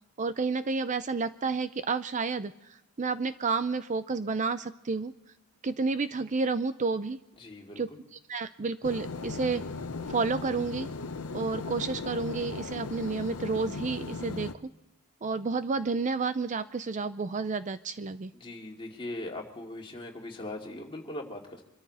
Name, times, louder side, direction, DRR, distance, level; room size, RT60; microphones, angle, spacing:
voice 1, 0.2-5.1 5.6-7.2 7.8-9.6 10.1-10.9 11.3-14.5 15.2-18.3, right 4 dB, 35° right, 12 dB, 0.5 m, -30 dB
voice 2, 7.4-7.8 18.3-21.6, left 1 dB, 25° left, -1 dB, 2.5 m, -40 dB
sound 1, 8.8-14.5, left 3 dB, 75° left, 0.8 m, -37 dB
25.5 x 13.5 x 4.2 m, 0.90 s
head